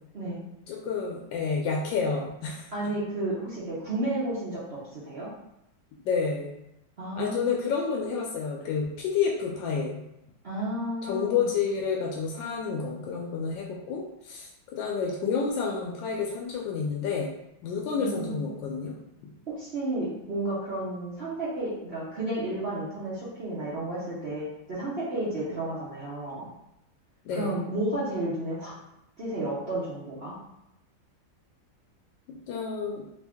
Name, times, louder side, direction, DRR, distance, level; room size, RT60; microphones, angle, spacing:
voice 1, 0.7-2.7 6.0-6.5 7.1-10.0 11.1-17.3 17.6-18.9 19.2-19.3 27.2-27.6 32.3-33.0, left 5 dB, 85° left, -1 dB, 1.3 m, -29 dB
voice 2, 2.7-5.3 7.0-7.5 10.4-11.5 17.9-18.4 19.6-26.5 27.3-28.7 29.2-30.4, right 1 dB, 50° right, -9 dB, 0.8 m, -32 dB
3.2 x 2.6 x 3.5 m, 0.84 s
omnidirectional pair, 2.0 m